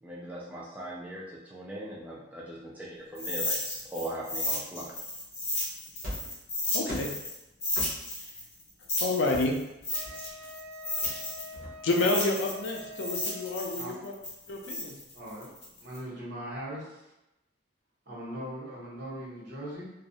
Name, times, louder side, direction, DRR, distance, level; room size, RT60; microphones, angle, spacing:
voice 1, 0.0-4.9, right 1 dB, 10° right, -5 dB, 0.3 m, -40 dB
sound 1, 3.1-7.3 7.6-11.5 11.9-16.0, left 2 dB, 35° left, 0.6 m, -33 dB
sound 2, 6.0-6.4 6.9-7.2 7.7-8.2 9.3-10.4 11.0-12.0, equal, 50° right, 0.7 m, -41 dB
voice 2, 6.7-7.1 9.0-9.6 11.8-14.1 14.5-15.0, left 2 dB, 75° left, 0 dB, 0.4 m, -29 dB
Wind instrument woodwind instrument, 9.9-13.8, left 1 dB, 85° right, 0.4 m, -45 dB
voice 3, 15.1-15.5 15.8-17.1 18.1-19.9, equal, 70° right, -7 dB, 1.0 m, -39 dB
2.3 x 2.0 x 2.6 m, 0.92 s
head